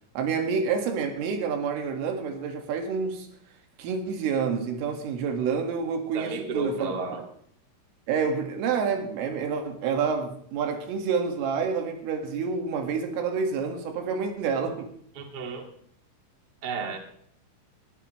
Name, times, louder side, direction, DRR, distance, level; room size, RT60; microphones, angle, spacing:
voice 1, 0.2-3.3 3.8-7.3 8.1-14.9, right 6 dB, 85° right, 4 dB, 4.4 m, -28 dB
voice 2, 6.1-7.2 15.1-15.7 16.6-17.0, right 3 dB, 55° right, 2 dB, 1.1 m, -32 dB
19.5 x 13.0 x 3.2 m, 0.65 s
omnidirectional pair, 5.7 m